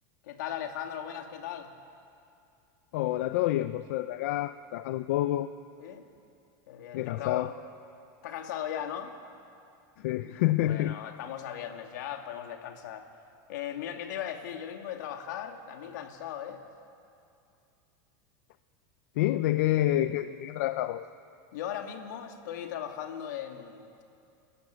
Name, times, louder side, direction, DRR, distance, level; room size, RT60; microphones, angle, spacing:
voice 1, 0.2-1.7 5.8-6.1 6.7-7.5 8.2-9.2 10.7-13.1 13.5-16.6 21.5-23.9, left 10 dB, 75° left, 4 dB, 2.3 m, -38 dB
voice 2, 2.9-5.5 6.9-7.5 10.0-11.0 19.2-21.0, left 14 dB, 60° left, 12 dB, 0.5 m, -28 dB
30.0 x 14.0 x 9.2 m, 2.5 s
supercardioid pair, 180°, 10 cm